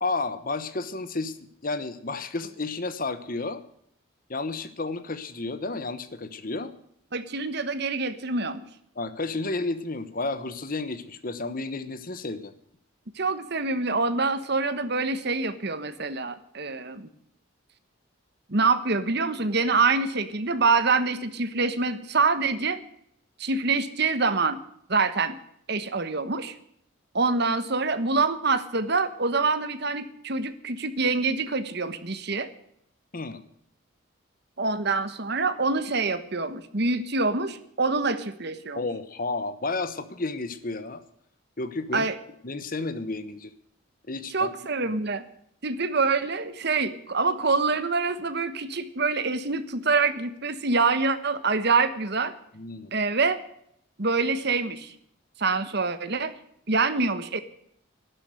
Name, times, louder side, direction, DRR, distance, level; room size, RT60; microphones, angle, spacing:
voice 1, 0.0-1.4 1.6-3.6 4.3-6.7 9.0-12.5 33.1-33.4 38.8-41.0 41.6-42.1 42.4-43.5 44.1-44.5 52.5-52.9, left 3 dB, 40° left, 12 dB, 1.0 m, -31 dB
voice 2, 7.1-8.6 13.2-17.1 18.5-22.8 23.4-24.6 24.9-25.3 25.7-26.5 27.1-32.5 34.6-38.8 41.9-42.2 44.3-45.2 45.6-52.4 52.9-53.4 54.0-54.9 55.4-56.3 56.7-57.4, right 4 dB, 50° right, 11 dB, 1.3 m, -25 dB
12.0 x 11.0 x 7.8 m, 0.70 s
head